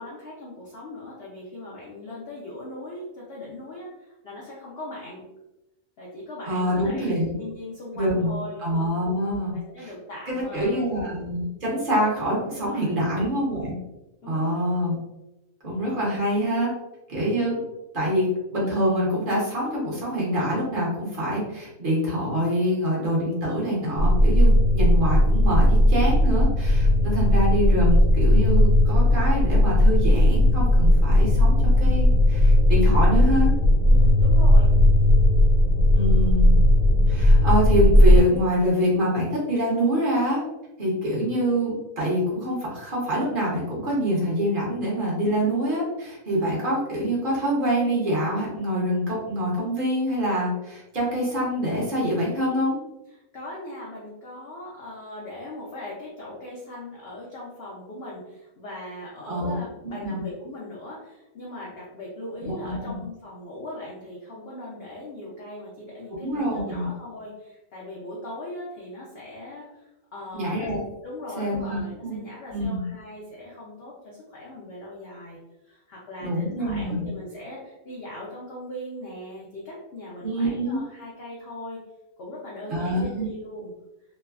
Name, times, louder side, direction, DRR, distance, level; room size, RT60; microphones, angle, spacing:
voice 1, 0.0-5.2 6.0-8.6 9.5-10.8 12.5-13.0 14.2-14.6 33.8-34.7 53.1-70.7 71.0-75.4 75.6-81.8 82.2-83.7, left 1 dB, 60° left, -5 dB, 0.6 m, -39 dB
voice 2, 6.5-7.3 7.9-9.9 10.3-13.8 14.2-15.0 15.6-16.7 17.1-17.6 17.9-33.5 35.9-36.6 37.1-40.4 40.8-52.8 59.3-59.5 59.8-60.2 62.4-63.0 66.2-66.9 70.3-70.8 71.4-72.2 72.5-72.9 76.2-77.1 80.2-80.8 82.7-83.3, equal, 40° right, -5 dB, 0.9 m, -25 dB
sound 1, 24.0-38.2, left 1 dB, 85° left, 1.1 m, -17 dB
3.1 x 2.1 x 2.3 m, 0.95 s
omnidirectional pair, 1.6 m